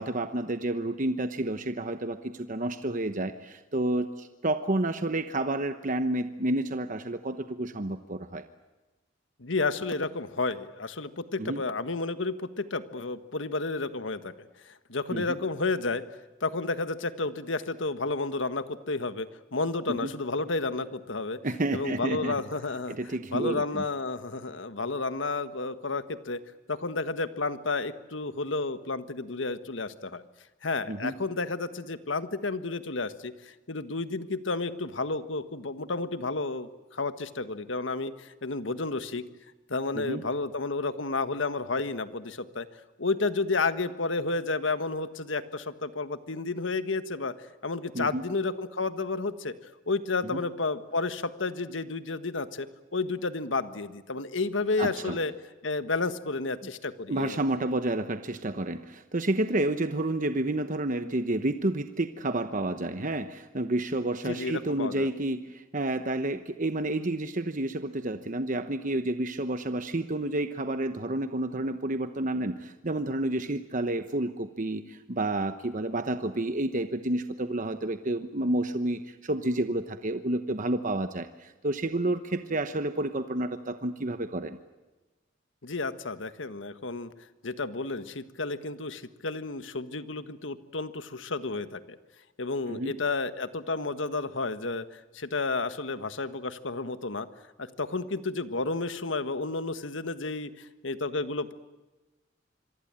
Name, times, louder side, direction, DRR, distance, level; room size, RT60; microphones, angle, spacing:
voice 1, 0.0-8.4 11.4-11.6 15.1-15.4 19.9-20.1 21.4-22.4 22.9-23.8 30.9-31.1 39.9-40.2 47.9-48.2 50.2-50.4 54.8-55.2 56.6-56.7 57.1-84.6 92.7-92.9, right 1 dB, 40° right, 9 dB, 1.0 m, -30 dB
voice 2, 9.4-14.3 14.6-16.0 16.4-21.4 21.7-23.0 23.3-26.4 26.7-30.2 30.6-39.2 39.7-42.7 43.0-47.3 47.6-49.5 49.9-55.3 55.6-57.4 64.2-65.1 85.6-87.1 87.4-92.0 92.4-97.3 97.6-101.5, left 3 dB, 75° left, 11 dB, 1.5 m, -31 dB
26.0 x 23.5 x 8.9 m, 1.2 s
head